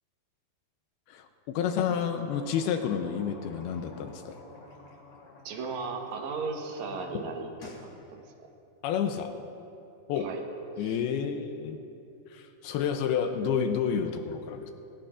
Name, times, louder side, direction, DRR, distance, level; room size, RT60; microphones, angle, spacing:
voice 1, 1.1-4.4 8.8-9.3 10.1-10.3 10.8-11.8 12.3-14.7, left 7 dB, 80° left, 6 dB, 2.3 m, -30 dB
sound 1, 1.9-7.0 7.3-7.9, left 3 dB, 50° left, 2.8 m, -50 dB
voice 2, 5.4-8.2 10.2-10.4 10.8-11.0, right 4 dB, 70° right, 2 dB, 1.7 m, -36 dB
21.0 x 17.0 x 2.5 m, 2.8 s
omnidirectional pair, 5.0 m